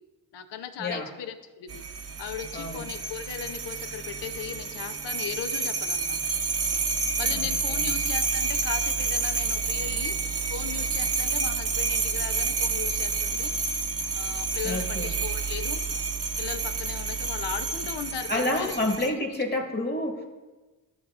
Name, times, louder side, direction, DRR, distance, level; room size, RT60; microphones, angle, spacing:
voice 1, 0.3-1.8 2.2-6.2 7.2-10.2 10.5-13.5 14.1-15.8 16.4-18.8 19.1-19.2, left 9 dB, 80° left, 9 dB, 0.8 m, -37 dB
sound 1, 1.7-19.1, right 4 dB, 35° right, 0.7 m, -29 dB
voice 2, 2.5-2.8 7.3-7.9 14.6-15.2 18.3-20.2, left 1 dB, 25° left, 1 dB, 1.8 m, -29 dB
13.0 x 5.7 x 2.5 m, 1.2 s
cardioid pair, 75°, 42 cm